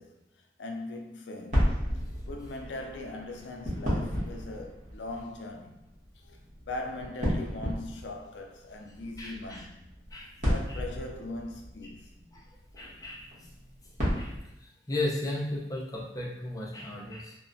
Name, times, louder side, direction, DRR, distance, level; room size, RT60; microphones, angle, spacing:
voice 1, 0.0-1.8 2.3-5.8 6.2-6.4 6.6-9.8 10.4-12.1, left 2 dB, 80° left, 0.4 m, -40 dB
sound 1, 1.5-14.4, equal, 40° right, 0.9 m, -34 dB
voice 2, 9.2-9.6 10.1-10.3 12.3-12.4 12.8-13.3 14.2-14.3 14.9-17.3, left 1 dB, 20° left, 0.4 m, -34 dB
3.0 x 2.1 x 2.5 m
head